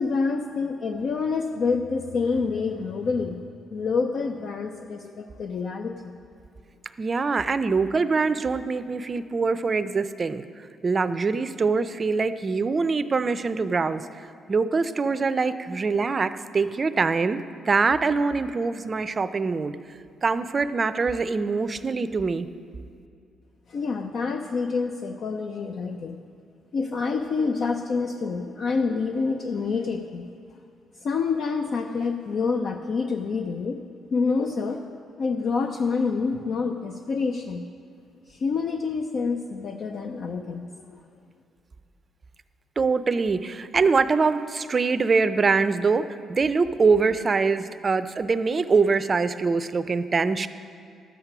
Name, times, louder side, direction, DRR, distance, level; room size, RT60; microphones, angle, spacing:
voice 1, 0.0-3.4 3.7-6.2 23.7-26.2 26.7-30.3 31.0-33.8 34.1-34.8 35.2-37.7 38.3-41.0, left 4 dB, 60° left, 5 dB, 0.6 m, -27 dB
voice 2, 7.0-10.4 10.8-14.0 14.5-19.7 20.2-22.5 42.8-50.5, right 4 dB, 35° right, 12 dB, 0.5 m, -24 dB
12.0 x 8.2 x 6.0 m, 2.4 s
cardioid pair, 90°, 0 cm